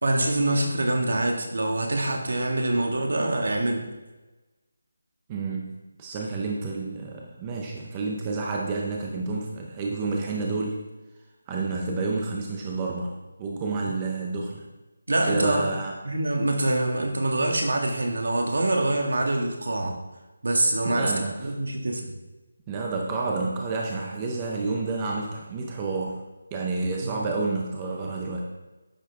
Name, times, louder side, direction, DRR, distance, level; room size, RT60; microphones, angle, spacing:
voice 1, 0.0-3.9 15.1-15.7 16.0-20.0 20.4-21.1 21.4-22.1 27.0-27.2, right 2 dB, 65° right, 2 dB, 2.0 m, -25 dB
voice 2, 5.3-5.7 6.0-10.8 11.5-14.6 15.3-16.0 20.9-21.5 22.7-26.2 26.5-28.4, right 3 dB, 10° right, -1 dB, 0.6 m, -29 dB
10.0 x 6.8 x 3.6 m, 1.1 s
figure-of-eight pair, 175°, 0 cm